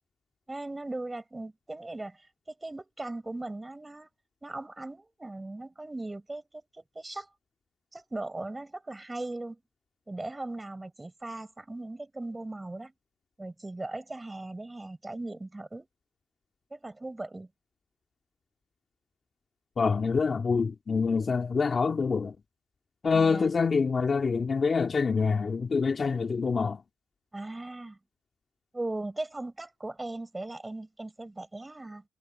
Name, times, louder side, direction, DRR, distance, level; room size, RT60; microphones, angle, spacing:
voice 1, 0.5-2.3 2.6-4.1 4.4-7.3 7.9-9.6 10.1-12.9 13.4-15.9 16.7-17.5 23.1-23.6 27.3-28.0 28.7-32.0, right 2 dB, 15° right, 6.4 m, -38 dB
voice 2, 19.8-22.4 23.0-26.8, left 5 dB, 35° left, 2.3 m, -26 dB
cardioid pair, 90°, 0 cm